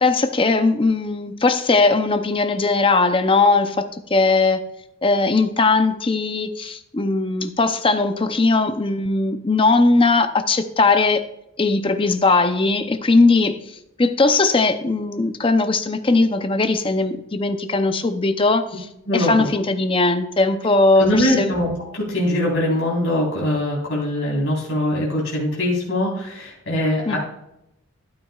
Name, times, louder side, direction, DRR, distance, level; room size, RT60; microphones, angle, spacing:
voice 1, 0.0-3.8 4.1-4.6 5.0-11.2 11.6-13.6 14.0-18.9 19.1-21.5 27.1-27.2, left 3 dB, 25° left, 8 dB, 0.6 m, -19 dB
voice 2, 19.1-19.5 21.0-27.2, left 1 dB, 60° left, -4 dB, 4.0 m, -22 dB
13.0 x 8.7 x 2.4 m, 0.84 s
head